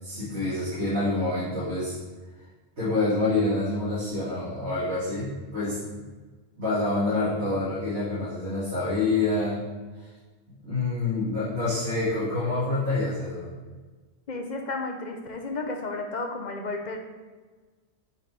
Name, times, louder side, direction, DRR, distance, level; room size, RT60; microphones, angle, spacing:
voice 1, 0.0-1.9 2.8-6.0 6.6-9.6 10.6-13.5, left 2 dB, 75° right, -12 dB, 2.5 m, -27 dB
voice 2, 14.3-17.0, left 3 dB, 45° left, 3 dB, 0.8 m, -32 dB
8.2 x 4.4 x 3.4 m, 1.4 s
omnidirectional pair, 1.1 m